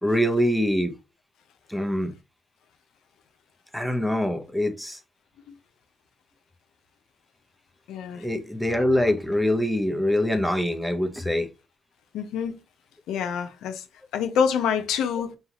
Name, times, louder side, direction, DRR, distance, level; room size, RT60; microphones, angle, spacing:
voice 1, 0.0-0.9 1.7-2.1 3.7-5.0 8.2-11.5, left 1 dB, ahead, 0.7 m, -24 dB
voice 2, 7.9-8.2 12.1-12.6 13.1-13.8 14.1-15.4, left 7 dB, 85° left, 0.7 m, -26 dB
5.5 x 2.4 x 2.9 m
cardioid pair, 90°, 0 cm